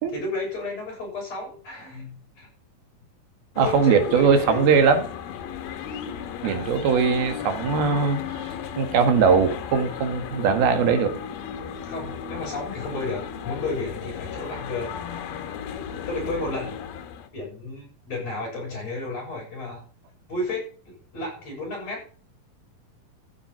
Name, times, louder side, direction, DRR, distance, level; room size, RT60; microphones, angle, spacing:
voice 1, 0.1-2.5 3.6-4.8 6.4-6.7 11.9-14.9 16.1-16.8 17.3-19.8 20.3-22.0, left 2 dB, 45° left, -6 dB, 8.7 m, -32 dB
sound 1, 3.6-17.3, left 8 dB, 85° left, 3.3 m, -35 dB
voice 2, 3.6-5.0 6.4-8.2 8.8-11.1, right 6 dB, 80° right, 7 dB, 3.6 m, -20 dB
14.0 x 8.5 x 5.7 m, 0.41 s
omnidirectional pair, 4.3 m